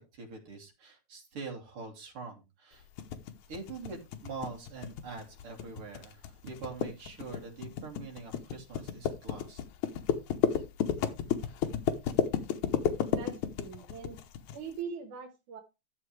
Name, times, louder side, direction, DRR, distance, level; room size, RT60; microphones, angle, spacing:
voice 1, 0.0-2.9 3.5-9.6, right 4 dB, 45° right, 1 dB, 3.5 m, -44 dB
sound 1, 3.0-14.6, left 9 dB, 80° left, 2.5 m, -32 dB
voice 2, 13.1-14.2 14.5-15.6, right 6 dB, 85° right, 7 dB, 2.9 m, -41 dB
13.0 x 7.5 x 3.3 m, 0.26 s
omnidirectional pair, 3.4 m